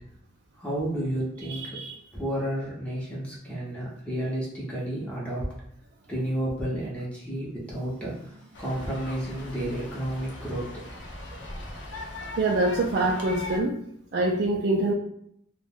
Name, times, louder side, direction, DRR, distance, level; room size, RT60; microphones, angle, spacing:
voice 1, 0.5-1.8 2.1-5.5 6.1-10.9, right 1 dB, 5° left, -6 dB, 0.6 m, -31 dB
voice 2, 1.5-1.9 12.4-13.7 14.1-14.9, right 2 dB, 60° right, -2 dB, 0.3 m, -25 dB
sound 1, 8.5-13.6, left 2 dB, 85° left, 0.6 m, -39 dB
2.4 x 2.1 x 3.4 m, 0.70 s
head